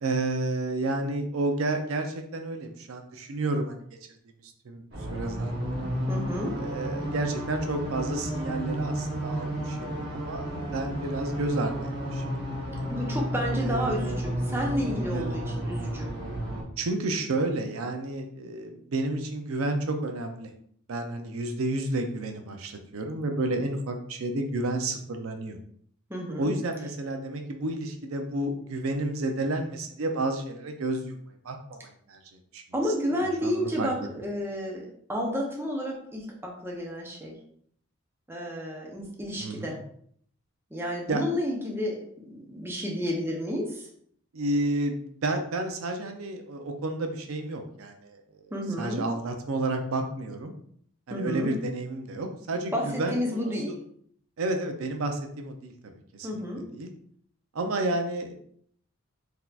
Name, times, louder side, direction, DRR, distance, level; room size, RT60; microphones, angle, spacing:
voice 1, 0.0-3.8 4.4-4.8 5.1-5.9 6.6-12.4 13.6-14.2 15.1-15.4 16.8-20.5 20.9-25.6 26.4-31.2 31.4-32.2 32.5-32.6 33.1-33.9 39.4-39.8 41.1-41.3 44.3-48.2 48.8-50.5 51.1-53.4 53.7-53.8 54.4-55.7 56.1-56.4 56.7-56.9 57.5-58.3, right 2 dB, 80° right, 5 dB, 0.5 m, -31 dB
sound 1, 4.9-16.6, equal, 50° right, 1.0 m, -32 dB
voice 2, 6.1-6.5 12.9-16.1 26.1-26.5 32.7-37.3 38.3-39.8 40.7-42.0 42.3-43.9 48.5-49.1 51.1-51.6 52.7-53.7 56.2-56.7, equal, 10° right, -2 dB, 0.6 m, -31 dB
3.9 x 2.8 x 2.3 m, 0.63 s
head